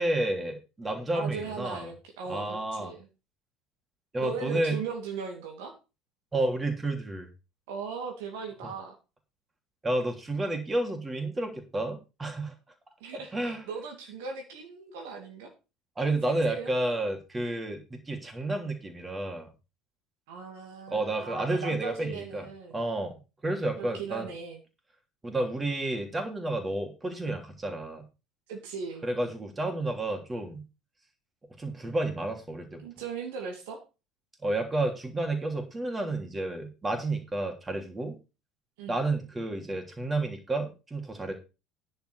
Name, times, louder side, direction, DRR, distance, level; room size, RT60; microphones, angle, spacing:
voice 1, 0.0-1.9 2.3-2.9 4.1-4.8 6.3-7.3 9.8-12.5 13.1-13.6 16.0-19.5 20.9-22.4 22.7-24.3 25.2-28.0 29.0-30.6 31.6-32.8 34.4-38.2 38.9-41.3, right 2 dB, 20° right, 4 dB, 3.2 m, -31 dB
voice 2, 1.1-3.1 4.2-5.7 7.7-8.9 13.0-15.5 16.3-16.7 20.3-22.8 23.8-24.6 28.5-29.1 32.8-33.8 38.8-39.0, right 5 dB, 65° right, 3 dB, 2.4 m, -38 dB
10.5 x 7.2 x 5.1 m, 0.29 s
figure-of-eight pair, 65°, 0 cm